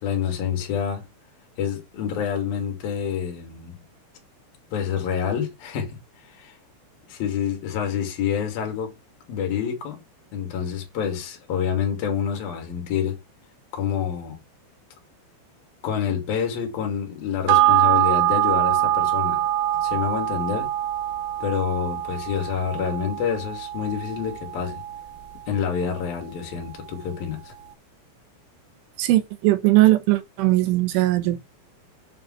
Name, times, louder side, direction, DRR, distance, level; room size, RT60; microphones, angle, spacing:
voice 1, 0.0-1.0 1.6-3.8 4.7-6.6 7.1-8.9 9.3-10.0 10.3-13.2 13.7-14.4 15.8-19.4 19.7-20.7 21.4-24.8 25.5-27.5, left 8 dB, 55° left, 4.3 m, -27 dB
sound 1, 17.5-26.2 26.6-26.7, right 14 dB, 70° right, 2.7 m, -24 dB
voice 2, 29.0-31.4, right 17 dB, 85° right, 3.8 m, -19 dB
9.1 x 5.5 x 6.1 m
omnidirectional pair, 5.5 m